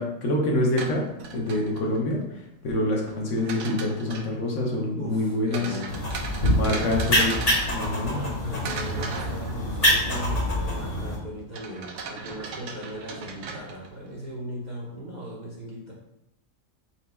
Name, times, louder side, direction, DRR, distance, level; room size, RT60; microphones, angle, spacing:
voice 1, 0.0-2.2 2.6-5.8 6.6-7.3 7.7-8.2, left 1 dB, 65° left, -1 dB, 1.0 m, -26 dB
sound 1, 0.6-2.1 3.1-4.4 5.5-8.3 8.6-10.0 11.5-14.1, right 4 dB, 70° right, 0.8 m, -38 dB
voice 2, 4.9-5.9 6.7-7.3 8.0-15.9, equal, 40° right, -6 dB, 0.7 m, -37 dB
sound 2, 5.9-11.2, equal, 35° left, 0.8 m, -25 dB
4.4 x 2.2 x 4.1 m, 0.83 s
omnidirectional pair, 1.5 m